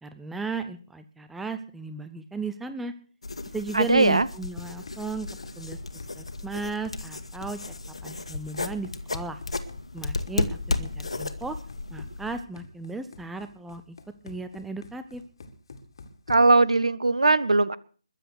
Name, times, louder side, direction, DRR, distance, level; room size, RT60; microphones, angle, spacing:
voice 1, 0.0-2.9 3.5-5.3 5.6-5.8 6.2-7.6 8.0-9.4 9.9-11.6 11.9-14.0 14.2-15.2, right 4 dB, 5° right, 10 dB, 0.6 m, -35 dB
sound 1, 3.2-12.4, left 3 dB, 60° left, 1.8 m, -34 dB
voice 2, 3.7-4.3 16.3-17.8, right 2 dB, 65° right, 18 dB, 1.0 m, -19 dB
Run, 4.5-16.7, left 3 dB, 45° left, 2.1 m, -47 dB
21.5 x 7.8 x 6.5 m, 0.42 s
figure-of-eight pair, 150°, 3 cm